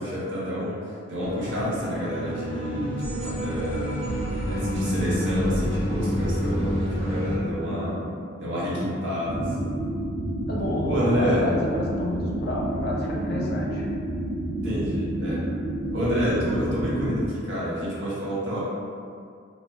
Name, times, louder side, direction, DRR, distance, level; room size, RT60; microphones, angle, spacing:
voice 1, 0.0-4.0 4.5-7.9 8.4-9.8 10.9-11.5 14.6-15.4 15.9-18.6, equal, 65° right, -7 dB, 0.9 m, -29 dB
sound 1, 1.2-7.3, equal, 35° right, 1.0 m, -28 dB
voice 2, 7.6-8.2 10.5-13.9, left 1 dB, 50° left, -3 dB, 0.5 m, -29 dB
sound 2, 9.2-17.3, right 1 dB, 85° right, 0.5 m, -29 dB
4.2 x 2.1 x 2.3 m, 2.3 s
head